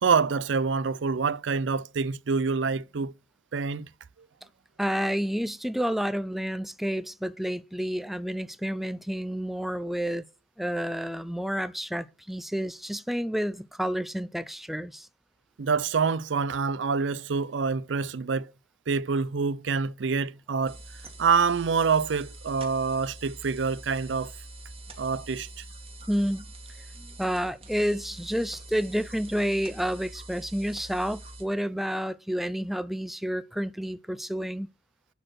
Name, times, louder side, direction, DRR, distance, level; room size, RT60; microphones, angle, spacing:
voice 1, 0.0-3.1 3.5-3.9 15.6-18.5 18.9-20.8 21.2-24.3 25.0-25.6, right 5 dB, 90° right, 0.5 m, -26 dB
voice 2, 4.8-10.2 10.6-15.1 26.1-26.5 26.8-34.7, equal, ahead, 0.4 m, -30 dB
sound 1, 20.7-31.4, right 1 dB, 30° right, 2.4 m, -45 dB
11.5 x 4.4 x 6.2 m
head